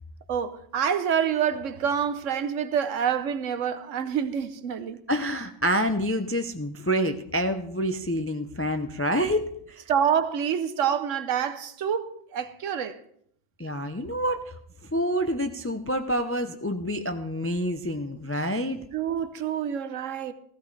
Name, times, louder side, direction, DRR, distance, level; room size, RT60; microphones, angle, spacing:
voice 1, 0.3-5.0 9.9-13.0 18.9-20.3, right 8 dB, 70° right, 1.1 m, -27 dB
voice 2, 5.1-9.8 13.6-14.4 14.9-18.8, equal, 20° left, 0.3 m, -27 dB
15.5 x 15.5 x 3.3 m
omnidirectional pair, 1.4 m